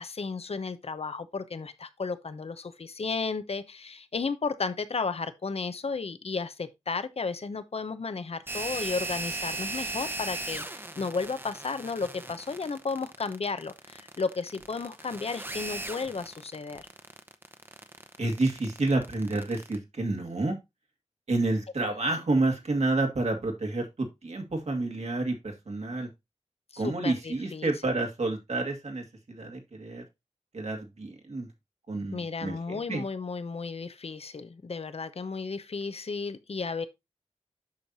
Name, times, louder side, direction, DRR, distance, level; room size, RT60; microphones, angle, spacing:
voice 1, 0.0-16.8 26.7-27.7 32.1-36.9, left 4 dB, 60° left, 0.8 m, -33 dB
sound 1, 8.5-19.8, right 2 dB, 20° right, 0.9 m, -38 dB
voice 2, 18.2-20.6 21.3-26.1 26.8-30.0 30.5-31.5 31.9-33.1, right 2 dB, 70° right, 2.2 m, -29 dB
8.5 x 6.4 x 2.7 m
wide cardioid pair, 85°, 12 cm